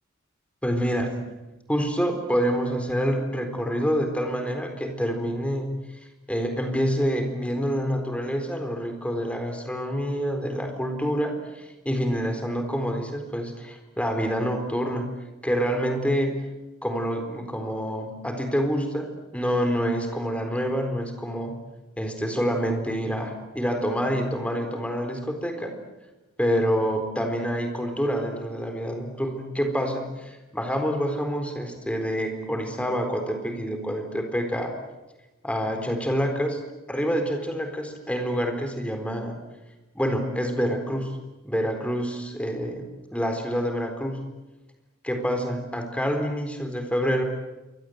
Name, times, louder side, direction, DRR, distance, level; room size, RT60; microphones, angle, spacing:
voice 1, 0.6-1.2 1.7-5.7 6.3-15.2 15.4-16.4 16.8-21.5 22.0-25.7 26.4-34.7 35.4-36.6 36.9-39.4 39.9-41.1 41.4-42.8 43.1-44.2 45.0-47.2, equal, 5° left, 5 dB, 4.1 m, -27 dB
28.0 x 24.0 x 8.1 m, 1.1 s
head